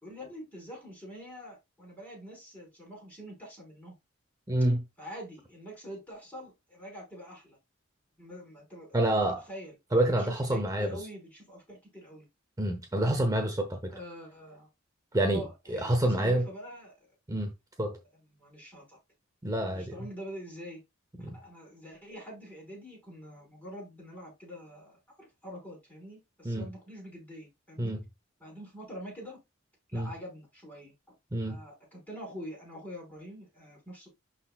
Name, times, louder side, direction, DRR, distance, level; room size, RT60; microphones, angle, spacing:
voice 1, 0.0-3.9 5.0-7.6 8.2-9.7 10.3-12.2 13.9-14.7 15.3-17.0 18.4-19.0 19.6-20.8 21.2-27.9 28.4-29.4 29.9-30.9 31.4-34.1, equal, 10° left, 5.1 m, -45 dB
voice 2, 4.5-4.8 8.9-9.4 9.9-11.0 12.6-14.0 15.1-16.4 17.3-17.5 17.8-18.0 19.4-19.9 21.2-21.4 26.4-26.7 27.8-28.0 29.9-30.1 31.3-31.6, right 1 dB, 15° right, 0.8 m, -28 dB
11.5 x 4.2 x 2.4 m
head